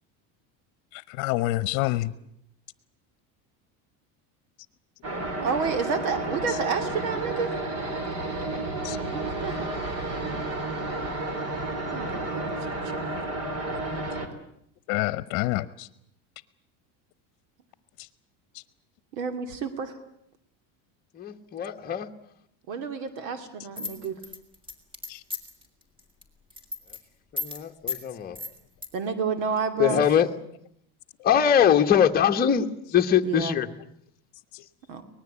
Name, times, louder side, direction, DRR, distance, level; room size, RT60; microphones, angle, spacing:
voice 1, 0.9-2.1 8.8-9.0 14.9-15.9 25.1-25.2 34.5-34.6, left 18 dB, 60° left, 15 dB, 1.0 m, -27 dB
sound 1, 5.0-14.3, right 2 dB, 35° right, 3.6 m, -31 dB
voice 2, 5.4-7.6 8.3-8.6 9.1-9.9 11.9-13.0 19.1-20.0 22.7-24.2 28.9-30.0 33.2-33.6 34.9-35.0, right 5 dB, 80° right, 8 dB, 2.7 m, -30 dB
voice 3, 21.2-22.1 27.3-28.4 29.8-30.3 31.2-32.6 32.9-33.7, left 9 dB, 20° left, 3 dB, 1.3 m, -22 dB
sound 2, 23.8-25.6 26.0-26.2 26.5-27.0 27.4-27.6 27.9-28.0 28.3-28.9, left 3 dB, 10° right, 3.2 m, -33 dB
24.5 x 19.5 x 8.3 m, 0.72 s
cardioid pair, 160°, 41 cm